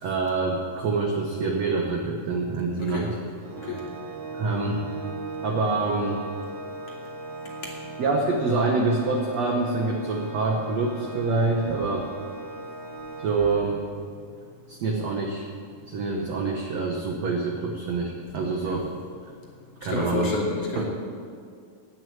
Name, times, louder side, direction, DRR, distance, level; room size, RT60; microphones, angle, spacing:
voice 1, 0.0-3.2 4.3-4.8 5.4-6.2 8.0-12.1 13.2-13.8 14.7-15.4 15.9-18.9 19.8-20.3 20.7-20.8, right 3 dB, 65° right, 0 dB, 1.7 m, -26 dB
voice 2, 2.8-3.1 3.6-3.9 7.6-7.7 18.6-18.8 19.8-20.9, left 2 dB, 40° left, -3 dB, 3.2 m, -29 dB
Organ, 3.4-14.2, right 3 dB, 35° right, 3.1 m, -38 dB
18.0 x 6.3 x 9.2 m, 2.2 s
omnidirectional pair, 4.5 m